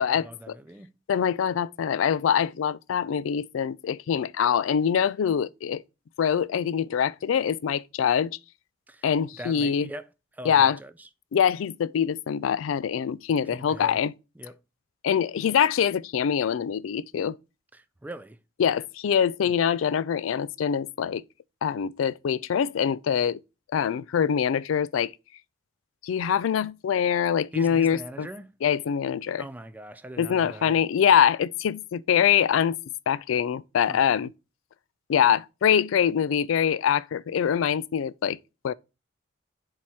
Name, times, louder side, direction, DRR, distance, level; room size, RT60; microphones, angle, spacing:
voice 1, 0.1-0.9 8.9-9.1 9.4-10.1 10.3-11.1 13.5-14.0 14.4-14.6 17.7-18.4 27.5-28.5 29.4-30.8 33.8-34.0, right 1 dB, 10° right, 0.4 m, -41 dB
voice 2, 1.1-5.8 6.2-8.4 9.0-9.9 10.5-10.8 11.3-14.1 15.0-17.4 18.6-21.2 21.6-23.4 23.7-25.1 26.0-28.3 28.6-29.4 30.2-32.8 33.1-34.3 35.1-38.4 38.6-38.7, left 8 dB, 85° left, 0.3 m, -24 dB
7.4 x 2.9 x 4.6 m
head